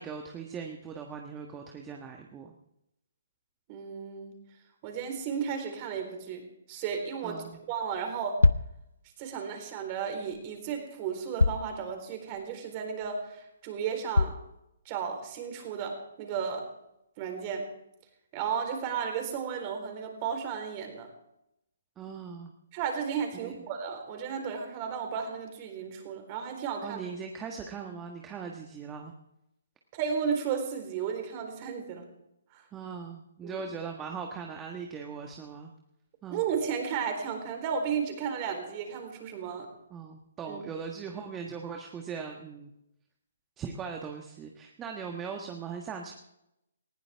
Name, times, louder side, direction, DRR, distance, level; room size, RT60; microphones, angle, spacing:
voice 1, 0.0-2.5 7.2-7.5 22.0-22.5 23.4-23.6 26.8-29.1 32.7-35.7 36.2-36.4 39.9-42.7 43.6-46.1, right 6 dB, 15° right, 2 dB, 1.4 m, -40 dB
voice 2, 3.7-4.3 4.8-8.4 9.2-14.3 14.9-16.7 17.2-17.7 18.3-21.1 22.7-27.0 29.9-32.0 32.5-32.6 33.4-33.6 36.3-39.7 40.5-40.6, right 7 dB, 35° right, 4 dB, 4.2 m, -34 dB
sound 1, 7.9-8.0 8.4-8.8 10.3-10.4 11.4-11.8 12.3-12.4 13.0-13.1 14.1-14.5, left 3 dB, 85° left, 0.6 m, -24 dB
19.5 x 16.5 x 3.6 m, 0.84 s
figure-of-eight pair, 135°, 0 cm